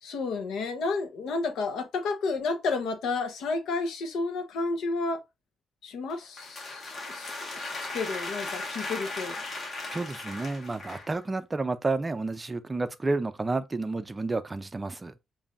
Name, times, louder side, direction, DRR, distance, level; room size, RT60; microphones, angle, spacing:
voice 1, 0.0-5.2 5.8-9.4, left 3 dB, 80° left, 1.0 m, -31 dB
sound 1, 6.1-11.2, left 2 dB, 40° left, 1.4 m, -37 dB
voice 2, 9.9-15.1, right 3 dB, 20° right, 0.4 m, -30 dB
7.1 x 2.7 x 2.5 m
cardioid pair, 130°, 0 cm